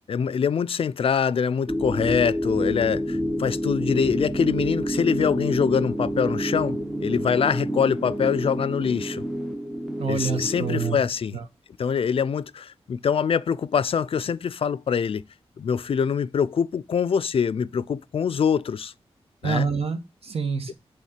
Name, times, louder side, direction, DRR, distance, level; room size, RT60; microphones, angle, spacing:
voice 1, 0.1-9.2 10.1-11.4 11.8-15.2 15.6-18.9 19.4-19.7 20.7-20.8, left 7 dB, 60° left, 0.4 m, -24 dB
sound 1, 1.7-10.9, equal, 5° right, 0.5 m, -28 dB
voice 2, 10.0-11.0 11.3-11.4 19.4-20.7, right 5 dB, 65° right, 1.4 m, -27 dB
8.4 x 3.5 x 6.6 m
wide cardioid pair, 160°, 11 cm